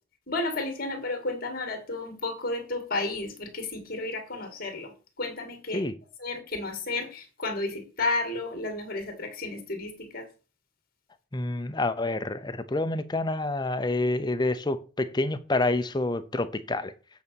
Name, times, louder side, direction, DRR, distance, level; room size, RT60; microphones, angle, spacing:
voice 1, 0.3-4.9 5.2-5.8 6.2-10.3, left 2 dB, 45° left, 2.3 m, -32 dB
voice 2, 11.3-16.9, left 2 dB, 20° left, 0.5 m, -28 dB
8.2 x 4.0 x 6.9 m
head